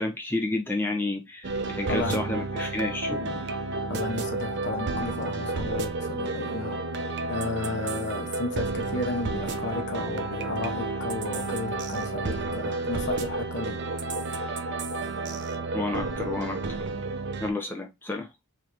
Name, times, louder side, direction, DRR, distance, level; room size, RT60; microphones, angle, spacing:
voice 1, 0.0-3.4 15.7-16.8 17.4-18.3, left 2 dB, 10° left, 0.5 m, -30 dB
sound 1, 1.4-17.5, right 3 dB, 50° right, 0.5 m, -31 dB
voice 2, 1.6-2.5 3.9-6.9 7.3-13.8, left 3 dB, 50° left, 0.8 m, -33 dB
4.5 x 3.4 x 2.4 m
head